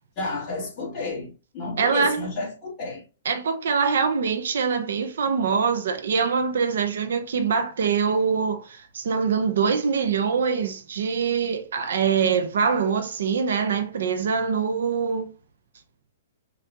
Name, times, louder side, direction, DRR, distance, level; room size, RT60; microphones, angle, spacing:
voice 1, 0.2-1.3 1.5-3.0, left 3 dB, 20° left, 2.2 m, -31 dB
voice 2, 1.8-2.3 3.2-15.3, right 6 dB, 70° right, 0.7 m, -24 dB
5.7 x 2.6 x 2.8 m
hypercardioid pair, 175°, 0 cm